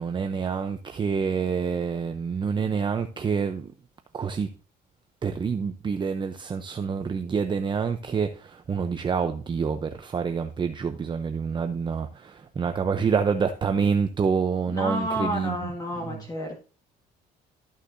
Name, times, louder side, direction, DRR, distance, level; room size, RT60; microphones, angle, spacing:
voice 1, 0.0-3.7 4.1-4.5 5.2-15.6 16.0-16.2, right 6 dB, 30° right, 0.7 m, -27 dB
voice 2, 14.7-16.6, equal, 20° left, 1.7 m, -30 dB
13.5 x 6.5 x 2.6 m
cardioid pair, 110°, 17 cm